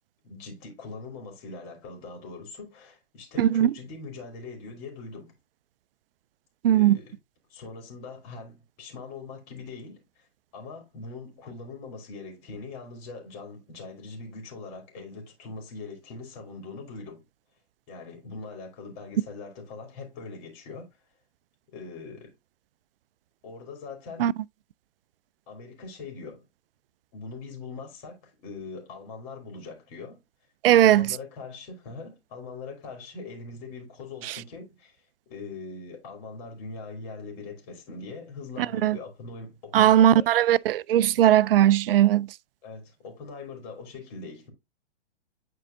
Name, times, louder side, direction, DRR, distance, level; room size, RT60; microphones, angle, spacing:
voice 1, 0.2-5.3 6.6-7.2 7.5-10.2 10.5-17.2 17.9-20.9 21.7-22.3 23.4-24.2 25.5-26.4 27.1-30.2 30.7-35.0 35.3-40.2 42.6-44.5, left 4 dB, 35° left, 3.3 m, -41 dB
voice 2, 3.4-3.7 6.6-7.0 24.2-24.3 30.6-31.2 38.8-39.0 39.7-42.3, right 12 dB, 55° right, 0.4 m, -19 dB
9.8 x 4.5 x 2.6 m
hypercardioid pair, 130°, 35 cm